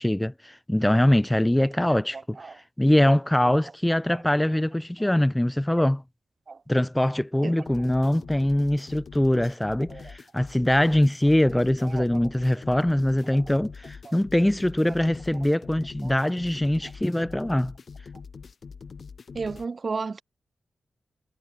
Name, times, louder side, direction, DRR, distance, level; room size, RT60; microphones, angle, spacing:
voice 1, 0.0-2.4 2.8-6.0 6.7-17.7, left 1 dB, 10° left, 0.4 m, -23 dB
sound 1, 7.7-19.7, left 5 dB, 60° left, 3.5 m, -44 dB
voice 2, 19.3-20.2, right 4 dB, 45° right, 0.6 m, -31 dB
cardioid pair, 80°, 0 cm